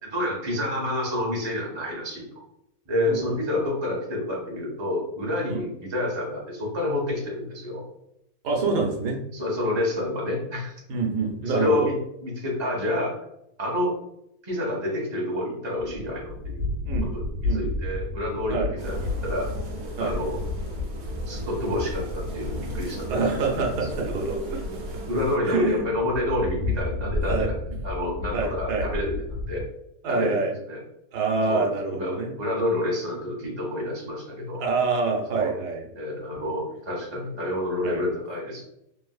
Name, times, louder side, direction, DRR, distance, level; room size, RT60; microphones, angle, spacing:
voice 1, 0.0-2.4 2.9-7.8 9.3-10.8 11.4-12.0 12.2-13.2 13.6-14.0 14.4-16.7 17.1-19.5 20.0-20.4 21.3-23.4 25.1-27.5 27.8-29.6 30.1-30.4 30.7-30.8 31.5-34.6 35.4-35.5 35.9-38.6, left 1 dB, 20° right, -3 dB, 0.7 m, -28 dB
voice 2, 3.1-3.4 5.5-5.6 8.4-9.2 10.9-11.9 16.8-17.1 17.5-17.7 18.5-18.7 20.0-20.1 23.1-24.6 25.4-25.9 27.3-27.5 28.3-28.9 30.0-30.5 31.1-32.3 34.6-35.9 36.4-36.5 37.8-38.0, right 4 dB, 90° right, 0 dB, 1.3 m, -26 dB
sound 1, 15.8-29.6, left 2 dB, 50° right, 1.5 m, -33 dB
sound 2, 18.8-25.4, equal, 70° right, 1.2 m, -35 dB
3.5 x 2.6 x 2.3 m, 0.80 s
omnidirectional pair, 1.7 m